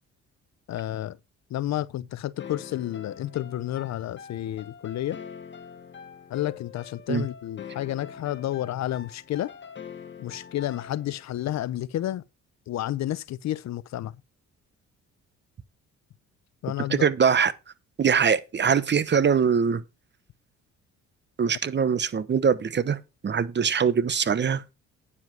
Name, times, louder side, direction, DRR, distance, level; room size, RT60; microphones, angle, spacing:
voice 1, 0.7-1.2 1.5-5.2 6.3-9.5 10.2-12.2 12.7-14.1 16.6-17.1, left 13 dB, 65° left, 0.6 m, -31 dB
sound 1, 2.4-11.3, left 7 dB, 40° left, 1.8 m, -44 dB
voice 2, 16.9-17.5 18.0-19.8 21.4-23.0 23.2-24.6, right 6 dB, 35° right, 0.9 m, -22 dB
9.8 x 7.3 x 4.6 m
cardioid pair, 90°, 30 cm